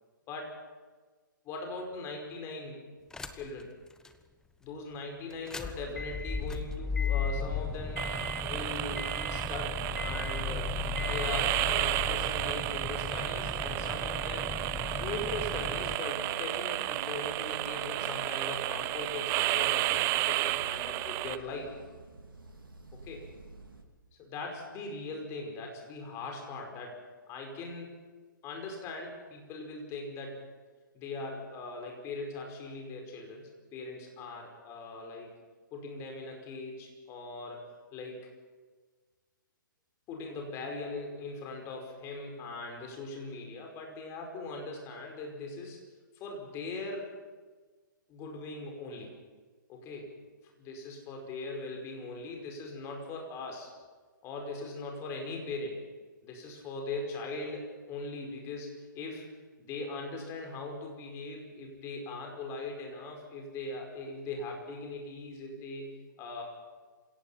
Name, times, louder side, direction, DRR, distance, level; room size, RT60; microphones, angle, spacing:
voice 1, 1.4-2.8 3.3-3.7 4.6-8.1 8.4-10.8 11.0-14.5 14.9-21.7 22.9-23.2 24.2-27.0 27.3-27.9 28.4-30.4 30.9-35.3 35.7-37.6 37.9-38.3 40.1-45.8 46.2-47.0 48.1-49.1 49.7-50.2 50.6-53.7 54.2-55.8 56.2-59.2 59.6-65.9 66.2-66.4, left 3 dB, 25° left, 2 dB, 5.1 m, -40 dB
sound 1, 3.1-3.6 4.0-4.1 5.3-16.0, left 5 dB, 5° left, 1.0 m, -36 dB
sound 2, 8.0-21.4, right 17 dB, 25° right, 0.6 m, -32 dB
sound 3, 9.8-23.8, right 2 dB, 90° right, 3.0 m, -49 dB
27.5 x 17.5 x 5.8 m, 1.4 s
hypercardioid pair, 135°, 11 cm